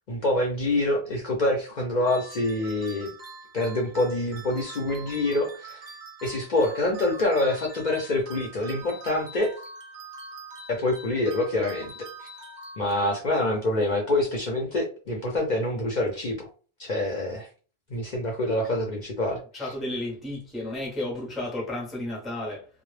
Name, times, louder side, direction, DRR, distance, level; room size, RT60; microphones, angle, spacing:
voice 1, 0.1-3.1 3.5-5.8 6.2-9.5 10.7-11.9 12.2-12.3 12.8-16.5 16.8-17.5 17.9-19.7, left 2 dB, 50° left, 0.6 m, -26 dB
sound 1, 2.1-13.3, right 3 dB, 50° right, 0.7 m, -44 dB
voice 2, 19.5-22.7, left 1 dB, ahead, 0.5 m, -32 dB
2.0 x 2.0 x 3.1 m
omnidirectional pair, 1.1 m